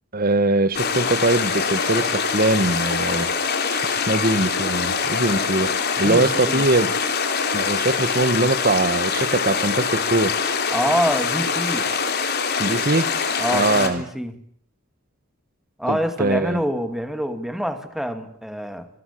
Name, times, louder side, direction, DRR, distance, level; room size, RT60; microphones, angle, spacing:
voice 1, 0.1-3.3 3.7-6.9 7.5-10.3 12.6-13.1 13.5-14.0 15.9-16.6, right 2 dB, 40° right, 15 dB, 1.5 m, -22 dB
sound 1, 0.7-13.9, left 5 dB, 50° left, 3.6 m, -24 dB
voice 2, 6.0-6.7 10.7-11.9 13.4-14.3 15.8-18.9, equal, ahead, 9 dB, 2.3 m, -26 dB
27.0 x 21.0 x 8.6 m, 0.66 s
head